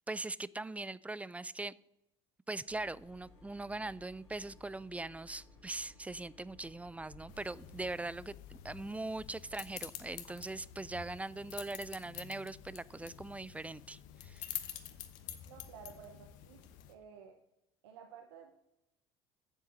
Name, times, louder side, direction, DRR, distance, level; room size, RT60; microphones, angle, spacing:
voice 1, 0.1-1.7 2.5-14.6, right 2 dB, 10° right, 21 dB, 0.3 m, -41 dB
sound 1, 2.7-7.8, left 3 dB, 90° left, 3.6 m, -58 dB
sound 2, 7.3-16.9, left 12 dB, 65° left, 1.0 m, -48 dB
voice 2, 15.5-17.4 17.8-18.6, right 7 dB, 80° right, 5 dB, 0.8 m, -53 dB
8.1 x 7.2 x 6.1 m, 0.90 s
hypercardioid pair, 70°, 14 cm